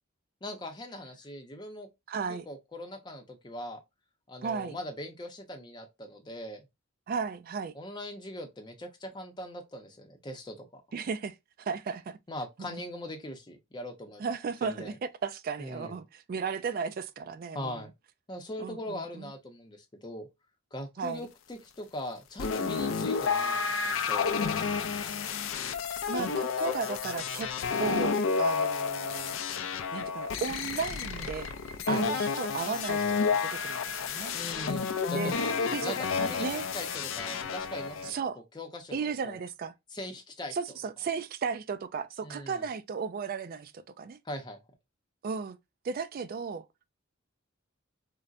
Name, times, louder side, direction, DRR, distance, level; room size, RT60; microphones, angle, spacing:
voice 1, 0.4-1.9 2.3-3.8 4.3-6.6 7.7-10.8 12.3-14.2 14.6-15.0 15.6-16.0 17.5-17.9 18.3-20.3 20.7-24.5 31.9-32.2 34.3-38.3 38.5-39.4 39.9-40.6 42.2-42.7 44.2-44.6, left 1 dB, 20° left, 0.7 m, -41 dB
voice 2, 2.1-2.4 4.4-4.8 7.1-7.7 10.9-12.2 12.6-12.8 14.2-14.9 15.2-17.8 18.6-19.3 21.0-21.3 26.1-27.5 27.8-29.4 29.9-31.5 31.9-34.4 35.1-35.3 35.7-36.0 36.4-36.6 38.0-38.4 38.9-39.7 40.5-44.2 45.2-45.6 45.8-46.7, right 5 dB, 45° right, 0.3 m, -35 dB
sound 1, 22.4-38.1, left 5 dB, 75° left, 0.4 m, -31 dB
3.9 x 2.1 x 2.4 m
head